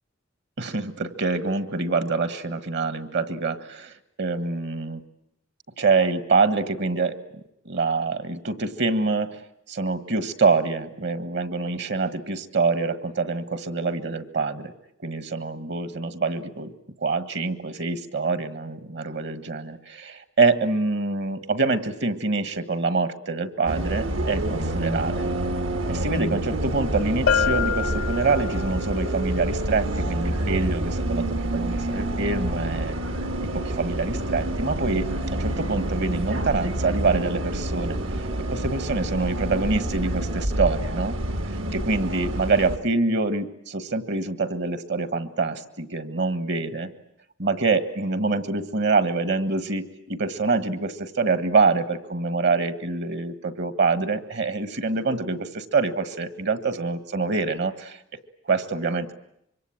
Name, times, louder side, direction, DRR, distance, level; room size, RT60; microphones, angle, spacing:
voice 1, 0.6-5.0 5.8-7.2 7.6-9.4 9.7-14.7 15.0-16.7 17.0-25.3 25.9-33.0 33.5-41.2 41.4-46.9 47.4-58.0 58.5-59.1, right 4 dB, 60° right, 12 dB, 1.6 m, -25 dB
Bus, 23.7-42.8, right 1 dB, 80° right, 1.9 m, -28 dB
Bell, 27.3-28.9, left 7 dB, 75° left, 1.1 m, -25 dB
26.0 x 23.5 x 8.9 m, 0.76 s
head